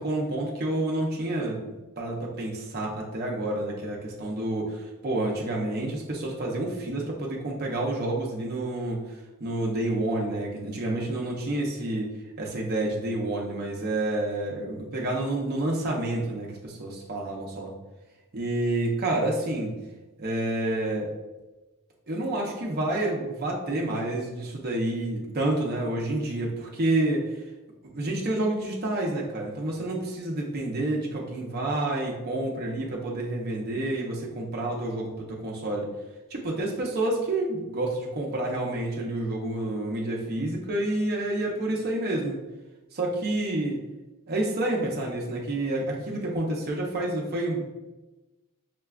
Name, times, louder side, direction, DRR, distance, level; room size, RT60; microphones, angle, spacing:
voice 1, 0.0-1.6 2.0-12.1 12.4-17.7 18.3-19.8 20.2-21.1 22.1-27.4 27.8-35.9 36.3-42.4 42.9-43.8 44.3-47.6, right 1 dB, 45° right, -2 dB, 0.6 m, -29 dB
5.7 x 2.3 x 2.3 m, 1.1 s
head